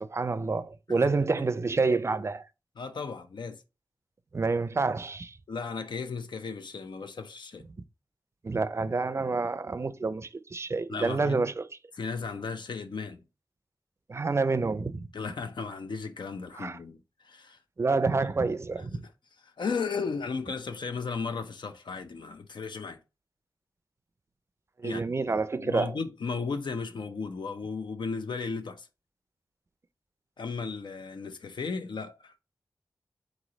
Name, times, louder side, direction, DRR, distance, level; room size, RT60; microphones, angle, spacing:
voice 1, 0.0-2.5 4.3-5.4 8.4-11.7 14.1-15.1 16.6-16.8 17.8-19.0 24.8-25.9, right 3 dB, 35° right, 0.4 m, -28 dB
voice 2, 2.8-3.6 5.5-7.6 10.9-11.4 11.9-13.2 15.1-17.6 18.1-18.3 18.9-19.1 19.4-23.0 24.8-28.9 30.4-32.4, left 5 dB, 75° left, 0.5 m, -35 dB
3.8 x 3.1 x 3.8 m
wide cardioid pair, 75°, 8 cm